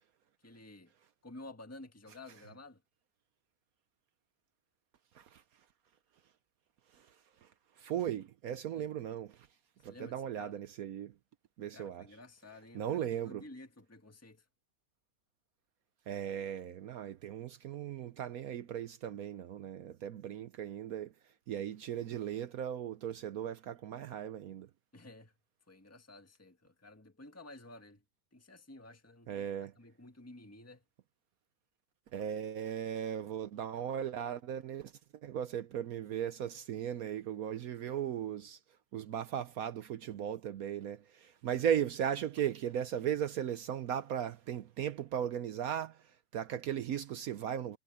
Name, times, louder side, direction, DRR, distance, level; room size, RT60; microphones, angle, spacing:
voice 1, 0.4-0.9 1.2-2.8 8.7-8.9 9.8-10.6 11.7-14.4 24.9-25.3 25.7-28.0 28.3-30.8, left 2 dB, 10° left, 1.7 m, -52 dB
voice 2, 7.8-9.5 9.8-11.1 11.6-12.1 12.7-13.4 16.1-21.1 21.5-24.7 29.3-29.7 32.1-34.9 35.2-38.6 38.9-47.8, right 9 dB, 65° right, 1.0 m, -37 dB
omnidirectional pair, 1.9 m